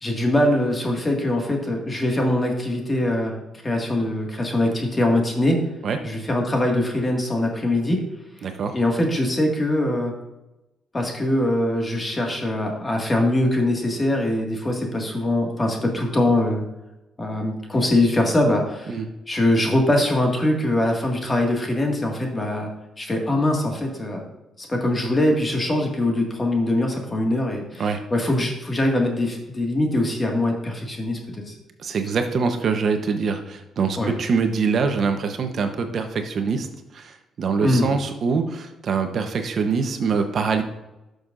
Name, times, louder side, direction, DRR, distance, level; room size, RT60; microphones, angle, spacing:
voice 1, 0.0-3.4 3.6-5.6 6.0-8.0 8.7-10.1 10.9-16.6 17.2-19.0 19.3-22.7 23.0-24.2 24.6-31.2 31.5-31.6 34.0-34.1 37.6-38.0, left 1 dB, 25° left, 1 dB, 2.0 m, -22 dB
voice 2, 8.4-8.8 18.9-19.1 27.8-28.0 31.8-36.7 36.9-40.6, right 5 dB, 55° right, 6 dB, 1.0 m, -24 dB
12.0 x 6.4 x 2.6 m, 0.95 s
cardioid pair, 90°, 0 cm